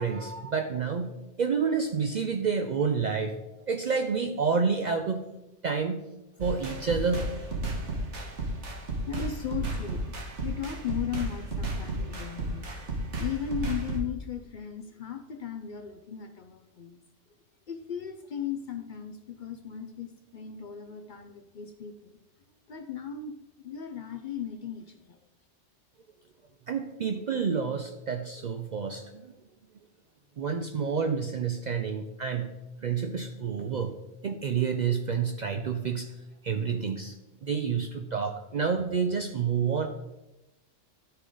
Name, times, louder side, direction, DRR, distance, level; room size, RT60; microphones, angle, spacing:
voice 1, 0.0-3.3 3.7-5.3 5.6-6.0 6.4-7.3 26.7-29.3 30.4-32.5 32.8-33.9 34.2-36.1 36.4-37.1 37.4-39.9, right 5 dB, 55° right, 5 dB, 0.5 m, -29 dB
sound 1, 6.4-14.0, right 1 dB, 75° right, 1.7 m, -33 dB
voice 2, 9.1-12.7 13.2-17.0 17.7-22.2 22.7-25.2, left 8 dB, 55° left, 7 dB, 0.6 m, -37 dB
11.5 x 4.8 x 3.8 m, 0.99 s
omnidirectional pair, 1.2 m